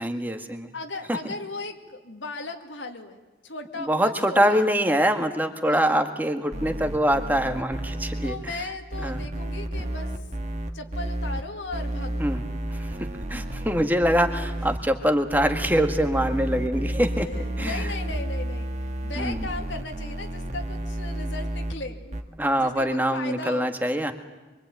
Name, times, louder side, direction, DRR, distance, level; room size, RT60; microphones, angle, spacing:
voice 1, 0.0-0.7 1.1-1.2 3.8-8.5 9.0-9.2 12.2-12.4 12.7-17.3 17.6-17.9 19.1-19.5 22.4-24.1, equal, 10° right, 6 dB, 1.7 m, -24 dB
voice 2, 0.7-4.7 5.7-6.0 8.2-10.2 10.7-12.3 17.2-18.7 19.0-22.2 22.6-23.7, left 2 dB, 75° left, 4 dB, 2.4 m, -36 dB
sound 1, 6.5-8.3 8.9-11.4 11.7-14.8 15.3-21.7 22.1-22.2, right 1 dB, 35° right, 1.8 m, -31 dB
25.0 x 24.0 x 9.2 m, 1.2 s
head